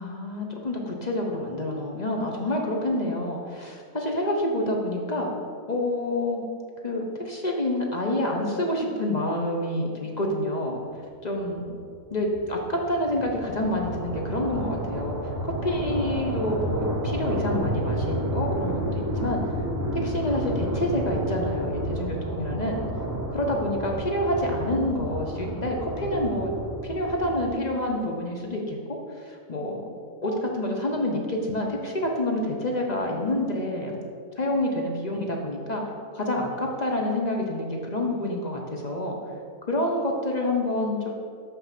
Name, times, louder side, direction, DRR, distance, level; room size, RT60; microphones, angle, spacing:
voice 1, 0.0-5.3 5.7-6.4 6.8-10.8 11.2-11.7 12.1-19.4 20.0-22.8 23.3-26.5 26.8-28.8 29.2-29.8 30.2-34.0 34.4-35.8 36.1-39.2 39.7-41.1, left 1 dB, 35° left, 0 dB, 0.8 m, -28 dB
sound 1, 11.5-27.8, right 1 dB, 20° right, 0.5 m, -31 dB
6.2 x 5.7 x 5.8 m, 2.2 s
omnidirectional pair, 1.5 m